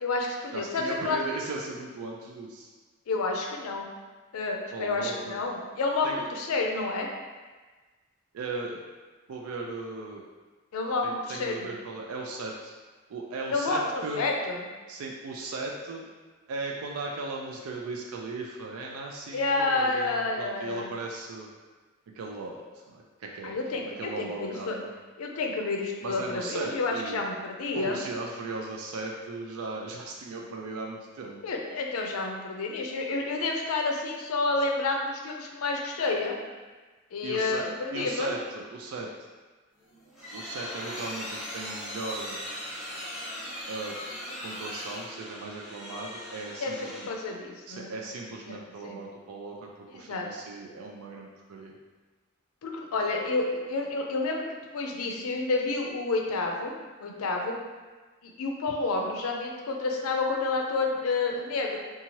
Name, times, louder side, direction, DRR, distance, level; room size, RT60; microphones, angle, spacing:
voice 1, 0.0-1.2 3.1-3.9 4.3-7.1 10.7-11.7 13.5-14.6 19.3-20.9 23.4-24.8 25.2-28.0 31.4-36.4 37.1-38.3 46.6-47.9 48.5-49.0 49.9-50.3 52.6-56.7 57.0-57.6 58.2-61.8, left 3 dB, 90° left, 1 dB, 0.5 m, -29 dB
voice 2, 0.5-2.7 4.7-5.4 6.0-6.2 8.3-8.8 9.3-10.2 11.0-12.7 13.1-14.2 14.9-16.1 16.5-21.5 22.1-22.6 22.9-23.5 23.8-24.9 26.0-27.2 27.7-31.4 37.2-37.7 37.9-39.1 40.3-42.4 43.7-44.0 44.4-47.1 47.7-51.7 59.0-59.1, right 3 dB, 85° right, -1 dB, 0.4 m, -37 dB
sound 1, 39.8-47.3, equal, ahead, 0.7 m, -39 dB
2.7 x 2.3 x 3.0 m, 1.3 s
head